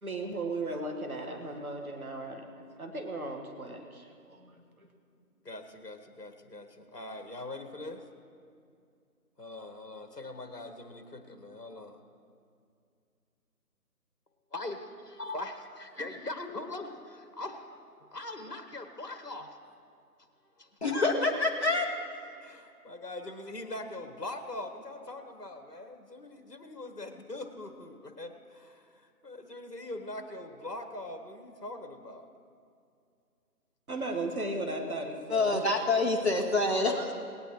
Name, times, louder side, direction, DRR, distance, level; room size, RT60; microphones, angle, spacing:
voice 1, 0.0-2.5 2.8-4.9 33.9-35.6, right 2 dB, 65° right, 3 dB, 1.8 m, -36 dB
voice 2, 5.4-8.0 9.4-12.0 14.5-19.6 20.6-20.7 22.4-32.3, left 2 dB, 80° left, 7 dB, 1.7 m, -42 dB
voice 3, 20.8-21.9 35.3-37.1, left 2 dB, 40° left, -1 dB, 1.9 m, -26 dB
19.0 x 18.5 x 3.2 m, 2.4 s
figure-of-eight pair, 165°, 47 cm